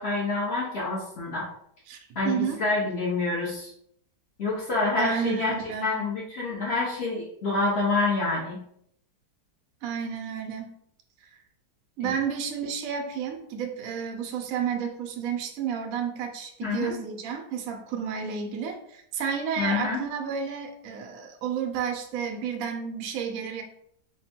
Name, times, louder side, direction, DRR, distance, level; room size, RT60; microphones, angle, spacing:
voice 1, 0.0-1.5 2.1-3.7 4.4-8.6 12.0-12.1 16.6-16.9 19.6-20.0, left 3 dB, 45° left, -5 dB, 0.9 m, -27 dB
voice 2, 1.9-2.6 5.0-5.9 9.8-10.8 12.0-23.6, right 7 dB, 70° right, 4 dB, 0.8 m, -31 dB
3.4 x 2.2 x 4.2 m, 0.70 s
omnidirectional pair, 2.0 m